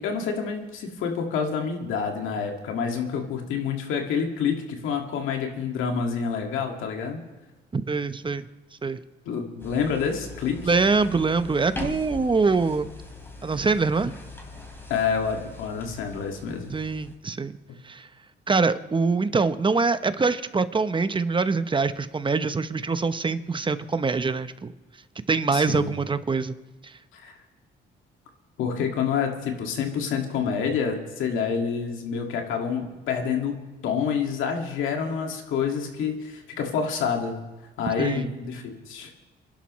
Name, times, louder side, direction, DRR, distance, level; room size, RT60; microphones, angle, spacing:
voice 1, 0.0-7.2 9.3-10.6 14.9-16.7 25.5-25.9 27.1-27.4 28.6-37.4 37.8-39.1, left 6 dB, 90° left, 3 dB, 2.1 m, -28 dB
voice 2, 7.7-8.4 8.8-9.0 10.6-12.9 13.4-14.1 16.7-17.5 17.8-18.1 18.5-24.7 25.3-26.5 26.8-26.9 38.0-38.3, right 4 dB, 25° right, 11 dB, 0.8 m, -24 dB
sound 1, 9.6-17.2, left 2 dB, 10° left, 2.8 m, -41 dB
28.0 x 11.5 x 3.1 m, 1.2 s
cardioid pair, 90°, 20 cm